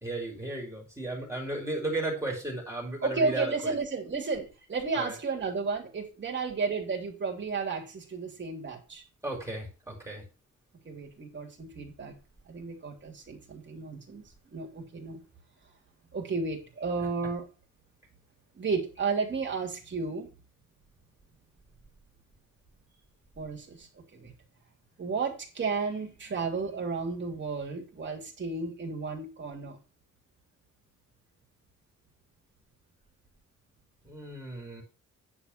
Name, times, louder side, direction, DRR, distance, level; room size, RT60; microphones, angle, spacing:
voice 1, 0.0-3.7 4.9-5.2 9.2-10.2 17.0-17.1 34.0-34.8, right 2 dB, 10° right, -2 dB, 3.9 m, -35 dB
voice 2, 3.0-9.0 10.8-12.1 12.5-14.2 14.5-15.2 16.1-17.5 18.5-20.3 23.4-24.3 25.0-29.8, right 4 dB, 35° right, 0 dB, 3.0 m, -33 dB
10.0 x 4.9 x 5.8 m, 0.32 s
wide cardioid pair, 145°, 32 cm